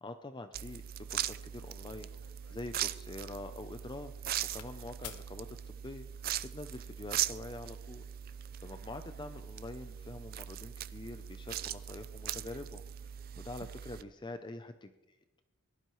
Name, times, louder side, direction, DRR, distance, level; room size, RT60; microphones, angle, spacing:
voice 1, 0.0-0.8 1.1-4.1 4.5-6.1 6.5-8.0 8.3-13.1 13.4-15.2, left 2 dB, 20° left, 8 dB, 0.5 m, -45 dB
sound 1, 0.5-14.0, right 11 dB, 40° right, 0.4 m, -40 dB
sound 2, 1.9-4.7 5.0-5.3 6.1-6.5, left 8 dB, 75° left, 1.0 m, -53 dB
18.5 x 12.0 x 3.1 m, 1.1 s
head